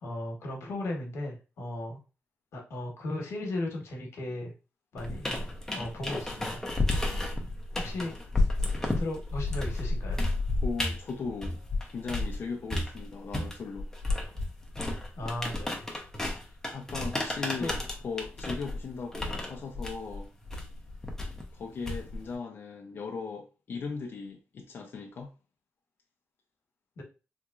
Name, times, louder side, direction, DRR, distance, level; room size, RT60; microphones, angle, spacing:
voice 1, 0.0-2.0 2.5-4.5 4.9-5.5 5.7-6.6 7.7-8.1 9.0-10.2 15.2-15.9 17.6-17.7 27.0-27.1, left 1 dB, 85° left, 1.1 m, -36 dB
sound 1, 5.0-12.4 12.7-22.3, left 2 dB, 10° left, 0.7 m, -32 dB
voice 2, 10.6-11.6 11.9-13.9 16.7-20.3 21.5-25.3, left 5 dB, 55° left, 0.5 m, -38 dB
3.6 x 2.9 x 2.4 m
wide cardioid pair, 120°, 5 cm